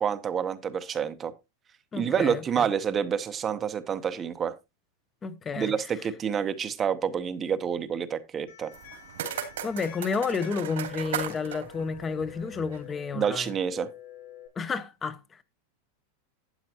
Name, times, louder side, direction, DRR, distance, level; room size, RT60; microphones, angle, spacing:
voice 1, 0.0-1.3 1.9-4.5 5.5-8.7 13.1-13.9, right 7 dB, 20° right, 0.8 m, -28 dB
voice 2, 1.9-2.7 5.2-5.7 9.6-13.5 14.6-15.4, left 5 dB, 15° left, 0.8 m, -31 dB
sound 1, 8.5-14.5, left 10 dB, 80° left, 6.5 m, -47 dB
sound 2, 8.7-12.9, right 8 dB, 90° right, 2.8 m, -37 dB
12.0 x 8.8 x 2.9 m
supercardioid pair, 155°, 0 cm